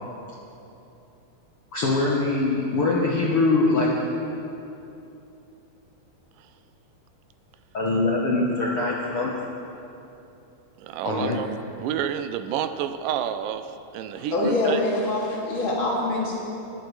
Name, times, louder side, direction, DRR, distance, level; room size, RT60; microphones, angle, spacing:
voice 1, 1.7-3.9 7.7-9.3 11.0-11.4, left 3 dB, 65° left, -4 dB, 1.4 m, -23 dB
voice 2, 10.8-11.5 11.8-14.8, right 10 dB, 80° right, 10 dB, 2.1 m, -29 dB
voice 3, 14.2-16.4, left 2 dB, 40° left, -5 dB, 2.9 m, -25 dB
21.5 x 11.5 x 3.2 m, 2.8 s
omnidirectional pair, 4.0 m